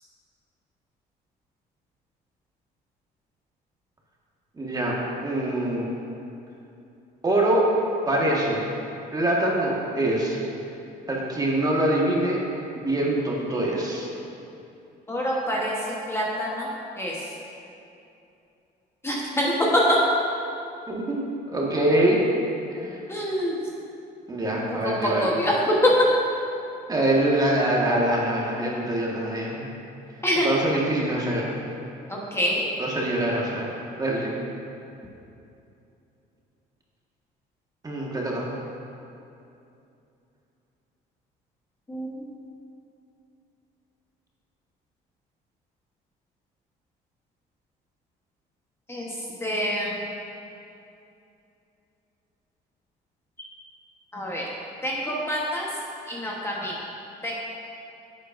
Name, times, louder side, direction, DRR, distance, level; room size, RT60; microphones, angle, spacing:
voice 1, 4.6-5.0 5.2-5.9 7.2-7.7 8.1-8.6 9.1-10.4 11.1-12.4 12.7-14.1 20.9-21.2 21.5-22.2 22.7-23.0 24.3-25.3 26.9-29.7 30.4-31.5 32.8-33.7 34.0-34.3 37.8-38.5, right 1 dB, 20° right, -3 dB, 1.5 m, -24 dB
voice 2, 15.1-16.7 17.0-17.3 19.0-20.0 23.1-23.6 24.7-25.9 30.2-30.5 32.1-32.7 41.9-42.2 48.9-50.0 54.1-54.5 54.8-55.7 56.1-56.8 57.2-57.3, equal, 15° left, -4 dB, 1.1 m, -25 dB
10.0 x 8.1 x 2.6 m, 2.7 s
cardioid pair, 110°, 17 cm